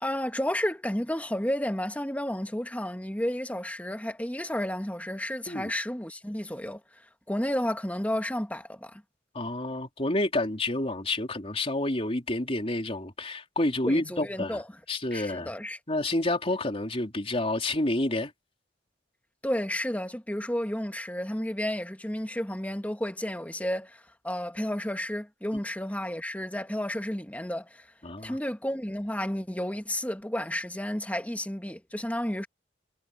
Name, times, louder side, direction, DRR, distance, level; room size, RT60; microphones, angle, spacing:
voice 1, 0.0-6.8 7.3-9.0 13.9-14.7 15.1-15.8 19.4-27.9 28.2-32.5, left 1 dB, 10° left, 1.8 m, -32 dB
voice 2, 9.3-14.6 14.9-15.5 15.9-18.3 28.0-28.4, left 1 dB, 35° left, 3.6 m, -29 dB
head